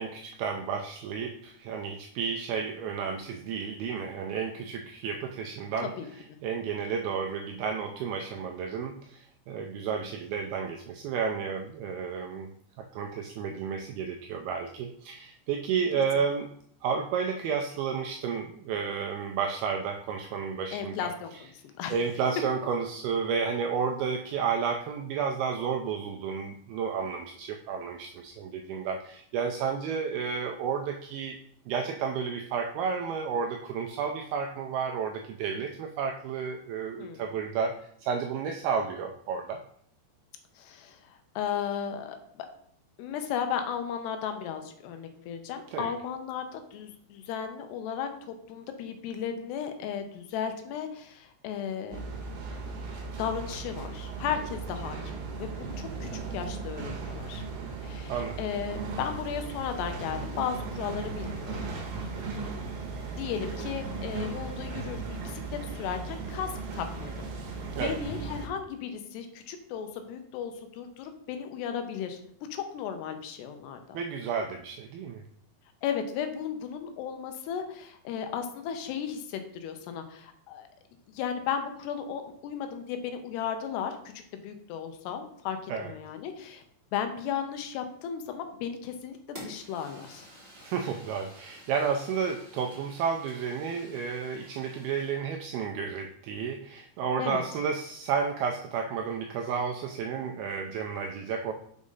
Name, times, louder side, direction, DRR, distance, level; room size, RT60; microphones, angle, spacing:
voice 1, 0.0-5.9 6.4-12.5 12.8-16.5 16.8-21.1 21.9-31.4 31.7-39.6 45.7-45.9 58.1-58.4 67.7-68.0 73.9-75.2 85.7-85.9 90.6-101.5, right 6 dB, 85° right, 4 dB, 2.2 m, -32 dB
voice 2, 6.0-6.4 20.7-22.0 37.0-37.2 40.6-42.5 43.0-52.1 53.2-57.4 57.8-62.1 63.2-67.3 67.8-72.2 72.5-74.0 75.8-80.7 81.1-84.0 84.3-86.6 86.9-90.3 97.2-97.4, left 8 dB, 80° left, 7 dB, 2.8 m, -35 dB
sound 1, 51.9-68.5, right 4 dB, 65° right, 2.6 m, -37 dB
Fire, 89.3-95.2, equal, 15° right, 2.1 m, -50 dB
6.4 x 4.9 x 5.4 m, 0.65 s
omnidirectional pair, 5.0 m